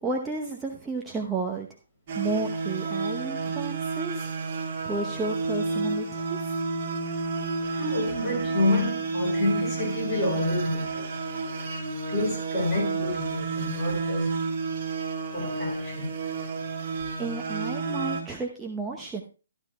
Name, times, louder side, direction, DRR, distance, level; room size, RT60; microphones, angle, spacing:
voice 1, 0.0-1.7 2.1-4.3 4.8-6.5 17.2-19.2, right 3 dB, 10° right, 0.9 m, -32 dB
sound 1, 2.1-18.2, right 3 dB, 40° right, 2.7 m, -30 dB
voice 2, 7.1-11.1 11.7-11.8 12.1-14.3 15.3-16.1, left 2 dB, 20° left, 6.8 m, -29 dB
14.5 x 11.5 x 2.3 m
figure-of-eight pair, 135°, 0 cm